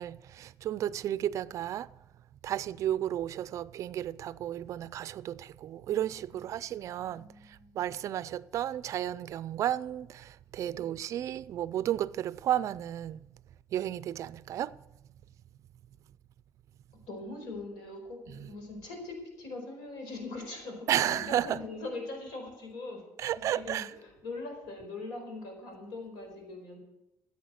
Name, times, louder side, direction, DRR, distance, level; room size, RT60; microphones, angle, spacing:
voice 1, 0.0-1.9 2.4-7.3 7.7-13.2 13.7-14.8 18.4-18.5 20.9-21.6 23.2-23.9, right 11 dB, 45° right, 0.4 m, -33 dB
voice 2, 6.3-7.8 10.6-11.0 17.1-23.0 23.3-26.8, left 2 dB, 85° left, 4.7 m, -42 dB
14.5 x 8.5 x 6.4 m
cardioid pair, 170°, 7 cm